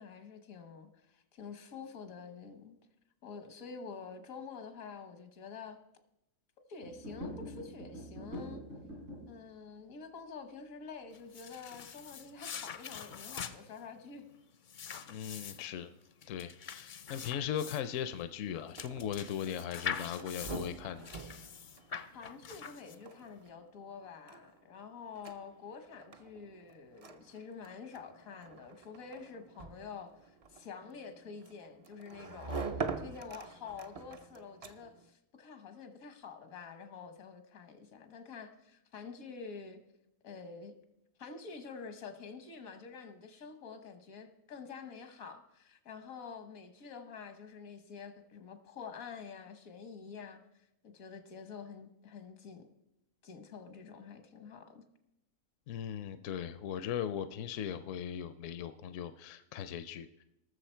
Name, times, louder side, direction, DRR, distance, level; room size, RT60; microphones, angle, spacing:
voice 1, 0.0-2.8 3.2-5.8 6.7-8.6 9.3-14.2 22.1-39.8 40.2-40.7 41.2-50.4 50.8-52.6 53.2-54.8, left 5 dB, 90° left, 8 dB, 1.6 m, -48 dB
sound 1, 6.8-9.4, equal, 70° right, 3.9 m, -44 dB
sound 2, 11.1-23.3, left 7 dB, 55° left, 0.6 m, -44 dB
voice 2, 15.1-15.9 16.3-21.1 55.7-60.2, left 9 dB, 70° left, 11 dB, 0.9 m, -38 dB
sound 3, 18.6-35.1, right 4 dB, 45° right, 0.5 m, -46 dB
19.0 x 6.7 x 4.4 m, 0.85 s
omnidirectional pair, 1.4 m